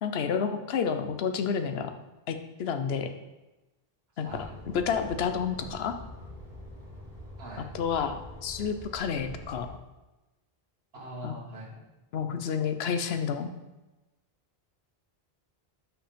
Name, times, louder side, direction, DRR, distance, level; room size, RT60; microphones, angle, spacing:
voice 1, 0.0-1.9 2.3-3.1 4.2-4.4 4.7-5.9 7.7-9.7 11.2-11.3 12.1-13.5, left 6 dB, 80° left, 8 dB, 0.9 m, -30 dB
sound 1, 4.3-9.7, left 1 dB, 45° right, 2.1 m, -45 dB
voice 2, 11.0-11.8, right 1 dB, 80° right, -3 dB, 1.9 m, -42 dB
5.8 x 5.3 x 5.1 m, 1.1 s
omnidirectional pair, 1.0 m